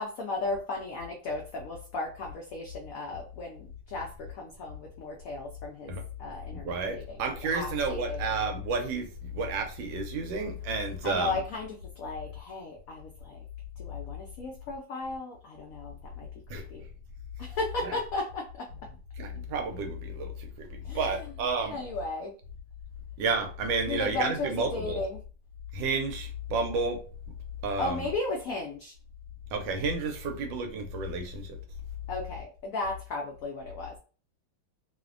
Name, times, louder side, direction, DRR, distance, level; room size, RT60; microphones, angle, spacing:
voice 1, 0.0-5.9 6.2-7.2 7.5-8.2 11.0-13.4 13.8-16.3 16.5-16.8 17.4-18.7 20.8-21.2 21.7-22.3 23.9-25.2 27.8-28.9 32.1-33.9, left 2 dB, 80° left, 0 dB, 0.7 m, -35 dB
voice 2, 6.5-11.4 16.5-16.6 17.8-18.0 19.2-21.8 23.2-25.0 25.7-27.0 27.6-28.1 29.5-31.6, right 3 dB, 90° right, 5 dB, 1.3 m, -31 dB
3.1 x 2.1 x 2.4 m, 0.38 s
omnidirectional pair, 2.0 m